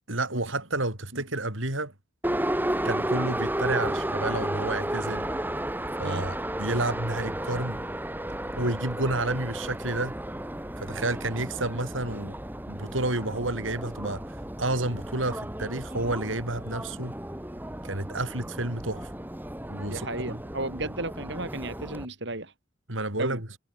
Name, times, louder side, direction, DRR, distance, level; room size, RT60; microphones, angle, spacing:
voice 1, 0.1-1.9 2.8-5.2 6.0-7.8 8.5-10.1 10.8-12.3 12.7-14.2 14.6-17.1 17.8-19.1 19.7-20.3 22.9-23.4, right 2 dB, 85° right, 7.7 m, -30 dB
Subway metro underground, 2.2-22.1, right 1 dB, 10° right, 2.3 m, -33 dB
voice 2, 19.9-22.5 23.2-23.4, right 2 dB, 65° right, 7.1 m, -34 dB
head